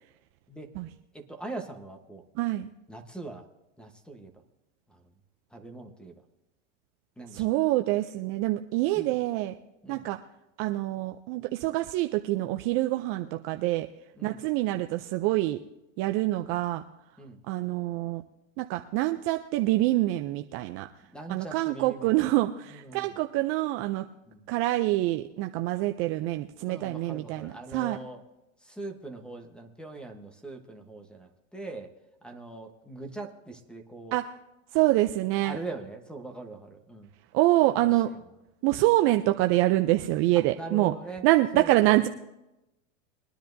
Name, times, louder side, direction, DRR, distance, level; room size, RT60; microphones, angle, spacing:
voice 1, 1.1-2.2 2.9-3.5 3.8-4.4 4.9-5.1 5.5-6.2 7.2-7.5 8.9-9.2 9.8-10.1 14.2-14.4 17.2-17.4 21.1-22.3 22.7-23.2 24.3-24.5 26.6-28.2 28.6-31.9 32.2-34.2 35.4-37.1 37.6-38.2 38.8-38.9 40.5-41.2 41.5-42.1, right 2 dB, ahead, 6 dB, 1.1 m, -42 dB
voice 2, 2.4-2.7 7.3-9.5 9.9-10.2 10.6-13.9 14.2-15.6 16.0-16.8 17.5-18.2 18.6-20.9 21.3-24.0 24.5-28.0 34.1-34.2 34.7-35.6 37.3-38.1 38.6-40.9 41.2-42.1, right 17 dB, 35° right, 6 dB, 0.5 m, -26 dB
22.5 x 10.0 x 2.6 m, 0.94 s
supercardioid pair, 130°, 39 cm